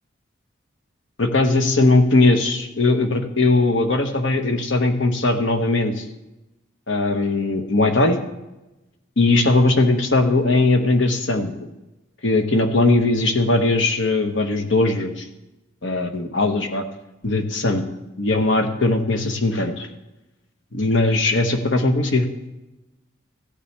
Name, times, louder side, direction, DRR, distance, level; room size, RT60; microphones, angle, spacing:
voice 1, 1.2-6.0 6.9-8.2 9.2-11.5 12.2-15.3 15.8-16.8 17.2-17.8 18.2-19.9 20.7-22.3, left 2 dB, 70° left, 5 dB, 1.2 m, -19 dB
15.0 x 9.9 x 3.4 m, 0.99 s
head